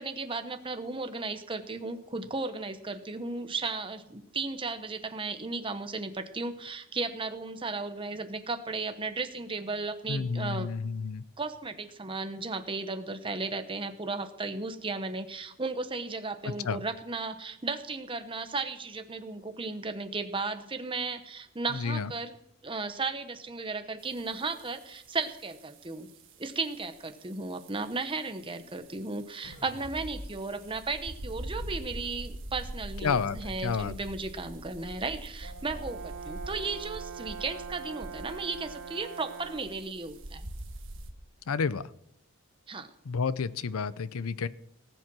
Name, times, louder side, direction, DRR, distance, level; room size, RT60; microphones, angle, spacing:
voice 1, 0.0-10.7 11.4-22.3 22.6-26.1 26.4-40.5 42.7-42.9, right 3 dB, 25° right, 8 dB, 1.0 m, -35 dB
voice 2, 10.1-11.2 16.4-16.8 21.7-22.1 33.0-33.9 41.5-41.8 43.1-44.5, left 5 dB, 80° left, 17 dB, 0.6 m, -30 dB
sound 1, 24.0-41.1, right 1 dB, 60° right, 1.4 m, -44 dB
sound 2, 29.4-32.7, left 1 dB, 45° left, 1.7 m, -48 dB
Brass instrument, 35.4-39.8, right 6 dB, 80° right, 2.4 m, -42 dB
18.5 x 7.6 x 6.1 m, 0.75 s
head